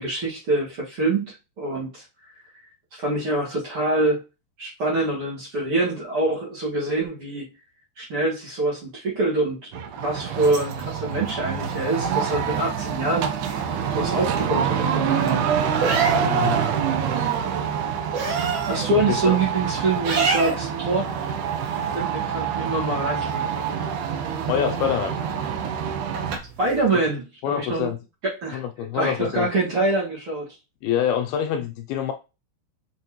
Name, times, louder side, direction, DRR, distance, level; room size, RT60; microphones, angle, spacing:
voice 1, 0.0-2.0 2.9-4.2 4.6-7.5 8.0-13.3 14.0-15.4 18.7-21.1 21.7-23.5 26.6-27.9 28.2-28.6 28.9-30.5, right 2 dB, 45° right, 2.1 m, -25 dB
sound 1, 9.7-26.4, right 8 dB, 80° right, 1.8 m, -26 dB
sound 2, 10.4-26.9, right 4 dB, 65° right, 3.6 m, -33 dB
voice 2, 16.2-16.7 19.3-19.4 24.5-25.2 27.4-28.0 28.5-29.5 30.8-32.1, left 9 dB, 80° left, 2.4 m, -25 dB
6.2 x 5.5 x 3.0 m
omnidirectional pair, 4.7 m